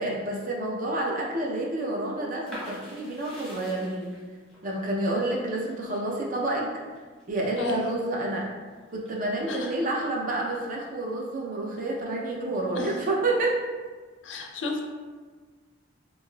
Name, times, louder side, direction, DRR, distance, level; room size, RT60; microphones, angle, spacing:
voice 1, 0.0-4.1 4.6-6.7 7.3-8.5 8.9-13.6, right 2 dB, 45° right, -2 dB, 0.5 m, -29 dB
sound 1, 2.5-8.1 8.5-9.4, equal, ahead, 0.9 m, -45 dB
voice 2, 14.2-14.8, left 2 dB, 75° left, 2 dB, 0.4 m, -32 dB
3.8 x 2.5 x 2.2 m, 1.4 s
head